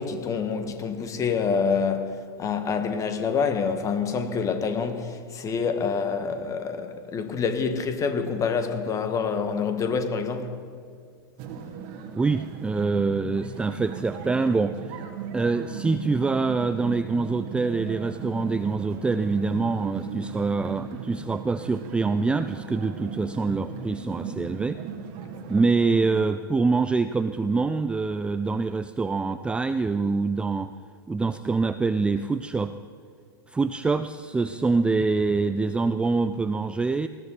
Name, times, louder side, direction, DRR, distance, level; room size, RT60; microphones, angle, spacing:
voice 1, 0.0-10.5, left 5 dB, 25° left, 1.7 m, -27 dB
sound 1, 11.4-26.2, right 6 dB, 45° right, 1.8 m, -37 dB
voice 2, 12.1-14.8 15.3-24.8 25.5-30.7 31.1-32.7 33.5-37.1, right 4 dB, 10° right, 0.4 m, -25 dB
19.5 x 15.0 x 4.1 m
figure-of-eight pair, 95°, 13 cm